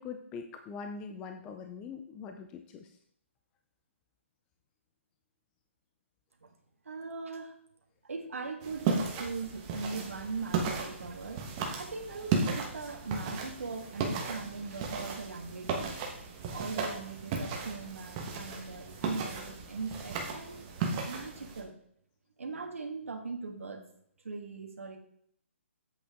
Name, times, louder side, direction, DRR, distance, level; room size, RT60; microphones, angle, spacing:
voice 1, 0.0-2.9, left 5 dB, 10° left, 5 dB, 0.4 m, -42 dB
voice 2, 6.8-7.6 8.0-11.4 11.7-15.9 16.5-21.7 22.4-23.8 24.2-25.0, right 4 dB, 85° right, 3 dB, 1.8 m, -40 dB
sound 1, 8.6-21.6, right 4 dB, 20° right, 1.2 m, -35 dB
8.1 x 8.0 x 3.6 m, 0.68 s
hypercardioid pair, 165°, 7 cm